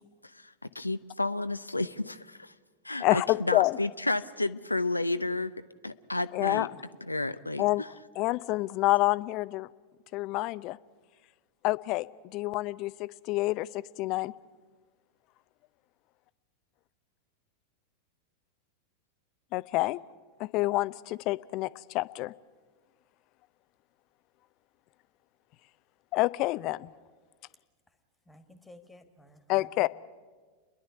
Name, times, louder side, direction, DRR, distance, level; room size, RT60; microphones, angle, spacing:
voice 1, 0.2-2.5 2.8-5.5 5.8-6.7 7.0-7.9, left 2 dB, 85° left, 11 dB, 0.6 m, -31 dB
voice 2, 3.0-3.8 6.3-6.7 7.6-7.8 8.2-9.7 10.1-10.8 11.6-12.1 12.3-14.3 19.5-20.0 20.4-22.3 26.1-26.9 29.5-29.9, left 19 dB, 40° left, 17 dB, 0.5 m, -28 dB
voice 3, 28.3-29.9, left 1 dB, 10° left, 8 dB, 1.9 m, -54 dB
29.5 x 11.0 x 9.8 m, 1.5 s
figure-of-eight pair, 90°, 0 cm